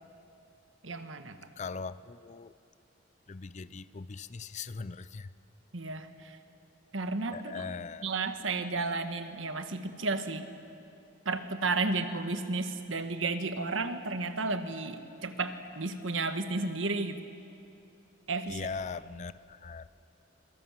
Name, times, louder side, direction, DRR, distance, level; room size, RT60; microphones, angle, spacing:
voice 1, 0.8-1.4 5.7-6.4 6.9-7.7 8.0-10.5 11.2-17.2 18.3-18.6, right 3 dB, 75° right, 1.5 m, -33 dB
voice 2, 1.6-2.5 3.3-5.3 7.3-8.1 18.5-19.9, left 4 dB, 35° left, 0.5 m, -40 dB
26.5 x 23.5 x 7.5 m
head